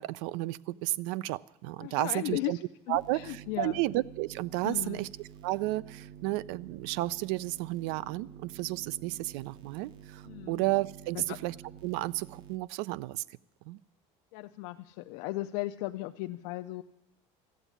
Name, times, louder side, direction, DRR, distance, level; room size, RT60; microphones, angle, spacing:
voice 1, 0.0-2.6 2.9-5.1 5.4-11.5 11.8-13.2 13.7-13.8, right 18 dB, 85° right, 22 dB, 0.4 m, -32 dB
voice 2, 1.8-3.8 4.6-5.1 10.2-10.6 11.1-11.4 14.3-16.8, left 18 dB, 80° left, 7 dB, 0.5 m, -36 dB
sound 1, 2.9-12.6, right 10 dB, 35° right, 0.6 m, -49 dB
13.5 x 8.1 x 10.0 m, 0.88 s
cardioid pair, 160°, 14 cm